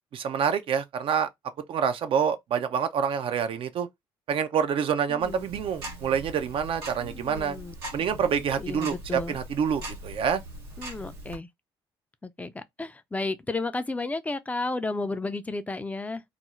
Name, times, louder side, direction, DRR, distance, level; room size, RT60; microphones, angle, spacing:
voice 1, 0.1-1.3 1.7-3.9 4.3-7.6 7.9-10.4, right 7 dB, 50° right, 0.4 m, -27 dB
voice 2, 5.1-5.5 7.0-7.7 8.2-8.3 8.6-9.4 10.8-11.5 12.2-16.2, left 3 dB, 10° left, 0.4 m, -33 dB
Tick-tock, 5.2-11.4, right 1 dB, 85° right, 0.9 m, -41 dB
2.4 x 2.0 x 3.0 m
hypercardioid pair, 50°, 12 cm